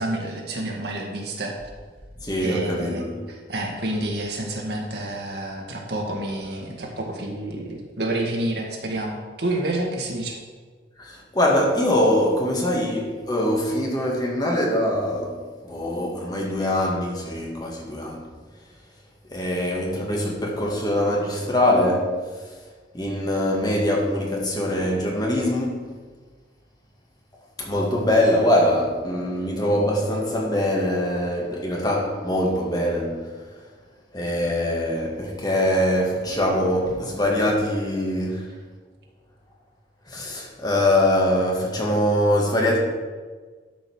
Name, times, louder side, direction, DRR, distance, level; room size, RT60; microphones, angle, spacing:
voice 1, 0.0-1.6 2.4-10.4, right 1 dB, 60° right, 1.8 m, -29 dB
voice 2, 2.2-3.1 11.0-18.2 19.3-22.5 22.9-25.9 27.6-33.3 34.1-38.5 40.1-42.8, left 1 dB, 20° left, 1.8 m, -23 dB
12.0 x 5.3 x 6.1 m
head